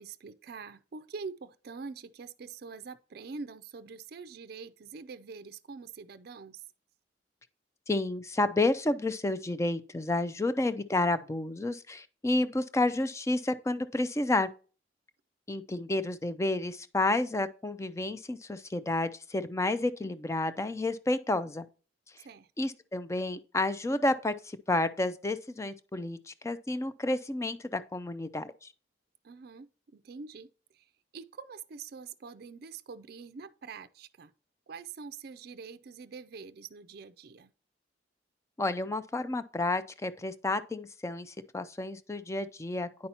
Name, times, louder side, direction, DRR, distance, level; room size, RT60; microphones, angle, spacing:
voice 1, 0.0-6.6 22.2-22.5 29.2-30.5 30.7-34.3 34.7-37.5, right 5 dB, 55° right, 0.4 m, -45 dB
voice 2, 7.9-14.5 15.5-21.7 22.6-28.7 38.6-43.1, left 2 dB, 15° left, 0.4 m, -30 dB
9.5 x 5.5 x 2.9 m
head